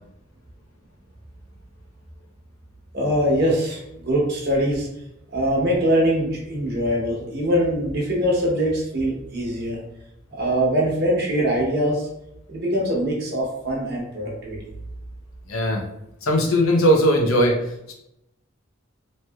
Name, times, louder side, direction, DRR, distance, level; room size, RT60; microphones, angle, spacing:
voice 1, 2.9-4.9 5.3-9.8 10.3-12.1 12.5-14.6, equal, 50° right, -2 dB, 0.9 m, -22 dB
voice 2, 15.5-15.8 16.2-17.6, equal, 90° left, 1 dB, 0.7 m, -18 dB
3.0 x 2.8 x 2.3 m, 0.83 s
head